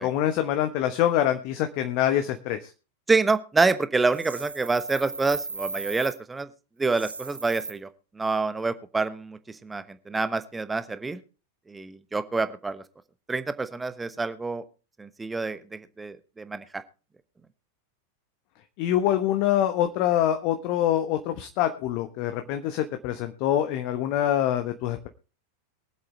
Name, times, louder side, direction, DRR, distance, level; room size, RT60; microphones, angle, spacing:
voice 1, 0.0-2.7 18.8-25.1, left 11 dB, 45° left, 8 dB, 1.1 m, -25 dB
voice 2, 3.1-6.5 6.8-7.9 8.2-11.2 11.7-12.8 13.3-14.6 15.0-16.8, right 3 dB, 10° right, 12 dB, 1.0 m, -27 dB
sound 1, 4.1-6.2 6.8-7.7, right 4 dB, 80° right, 1.1 m, -36 dB
23.0 x 7.9 x 3.2 m, 0.34 s
figure-of-eight pair, 90°, 0 cm